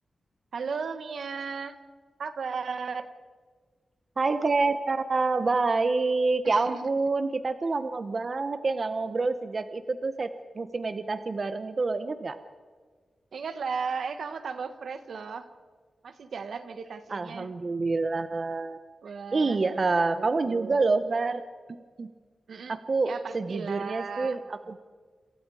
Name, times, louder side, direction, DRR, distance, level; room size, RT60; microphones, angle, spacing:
voice 1, 0.5-1.8 2.2-3.1 6.4-6.8 13.3-15.5 16.0-17.5 19.0-19.9 20.1-20.8 22.5-22.8 23.0-24.8, right 5 dB, 80° right, 9 dB, 1.5 m, -36 dB
voice 2, 4.2-12.4 17.1-18.8 19.3-21.4 22.0-22.1 22.7-24.6, right 3 dB, 40° right, 10 dB, 1.0 m, -27 dB
28.5 x 28.0 x 4.9 m, 1.5 s
wide cardioid pair, 145°, 0 cm